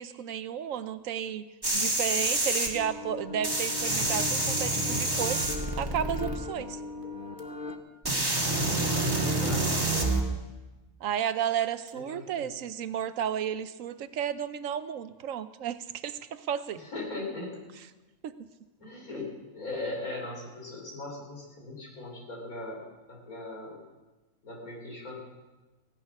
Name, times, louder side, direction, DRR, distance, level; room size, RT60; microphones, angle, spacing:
voice 1, 0.0-1.5 1.7-5.4 5.8-6.8 11.0-16.8 18.2-18.3, right 9 dB, 70° right, 13 dB, 1.0 m, -32 dB
sound 1, 1.6-2.7 3.4-6.3 7.4-7.5 8.0-10.2 11.9-12.0, right 2 dB, 15° right, 1.6 m, -27 dB
sound 2, 2.7-7.8, left 3 dB, 40° left, 1.1 m, -40 dB
voice 2, 8.7-9.8 11.9-12.5 16.7-17.6 18.8-22.8 23.1-23.8 24.4-25.2, left 2 dB, 85° left, -1 dB, 4.1 m, -39 dB
16.5 x 10.5 x 6.0 m, 1.2 s
omnidirectional pair, 1.5 m